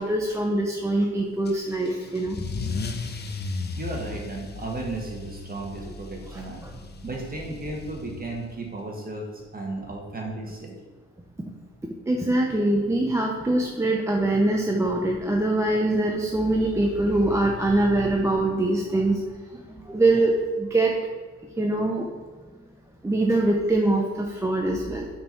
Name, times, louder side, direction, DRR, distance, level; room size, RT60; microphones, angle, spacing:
voice 1, 0.0-2.4 6.3-6.8 12.1-19.2 19.5-21.0 21.6-22.1 23.0-25.1, right 2 dB, 10° right, 0 dB, 0.6 m, -23 dB
Car / Engine starting / Accelerating revving vroom, 1.5-8.6, left 4 dB, 35° left, 0.6 m, -36 dB
voice 2, 3.8-6.6 7.0-10.8, right 2 dB, 30° right, 0 dB, 1.6 m, -34 dB
5.4 x 4.4 x 4.4 m, 1.3 s
cardioid pair, 90°, 30 cm